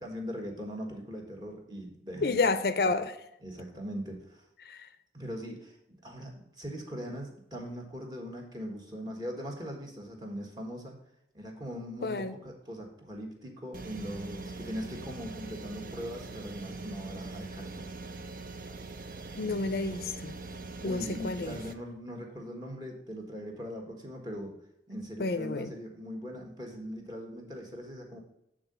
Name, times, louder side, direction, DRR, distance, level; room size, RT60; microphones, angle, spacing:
voice 1, 0.0-2.4 2.8-2.9 3.4-4.4 5.1-11.0 11.3-17.9 20.8-24.6 24.9-28.2, equal, 25° right, 1.5 m, -40 dB
voice 2, 2.2-3.1 4.7-4.9 12.0-12.3 19.4-20.3 20.8-21.5 25.2-25.7, left 3 dB, 60° left, 0.5 m, -30 dB
sound 1, 13.7-21.7, right 3 dB, 50° right, 0.6 m, -42 dB
8.4 x 3.8 x 6.7 m
head